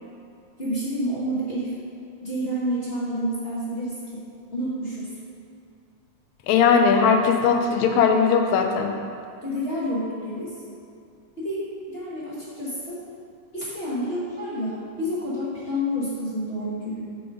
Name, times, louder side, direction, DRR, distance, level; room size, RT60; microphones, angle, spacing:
voice 1, 0.6-1.7 2.2-4.2 4.5-5.1 9.4-10.5 11.4-13.0 13.5-17.0, equal, 30° left, -9 dB, 1.1 m, -29 dB
voice 2, 6.5-8.9, left 6 dB, 75° left, 4 dB, 1.8 m, -19 dB
7.2 x 6.0 x 5.0 m, 2.4 s
omnidirectional pair, 3.5 m